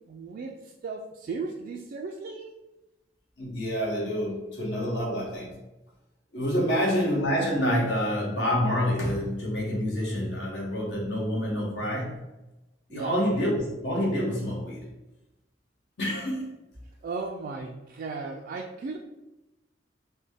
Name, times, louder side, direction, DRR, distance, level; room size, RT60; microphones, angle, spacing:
voice 1, 0.1-2.5 12.9-13.2 17.0-19.0, right 4 dB, 55° right, 0 dB, 0.3 m, -36 dB
voice 2, 3.4-5.5 6.3-12.2 12.9-14.8 16.0-16.5, equal, 65° left, -3 dB, 1.2 m, -27 dB
3.9 x 2.1 x 3.5 m, 1.0 s
head